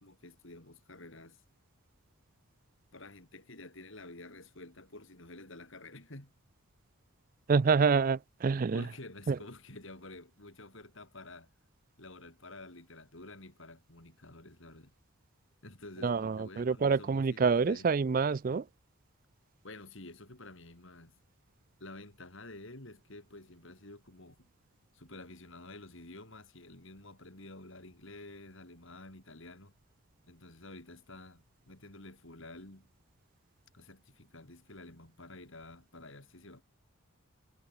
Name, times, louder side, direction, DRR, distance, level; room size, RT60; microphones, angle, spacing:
voice 1, 0.0-1.4 2.9-6.3 8.7-11.5 12.0-14.9 15.6-17.9 19.6-21.2 21.8-24.5 24.8-29.7 30.2-32.9 33.7-36.6, left 2 dB, 60° left, 3.4 m, -50 dB
voice 2, 7.5-8.8 9.3-9.4 16.0-18.7, right 5 dB, 40° right, 0.4 m, -27 dB
head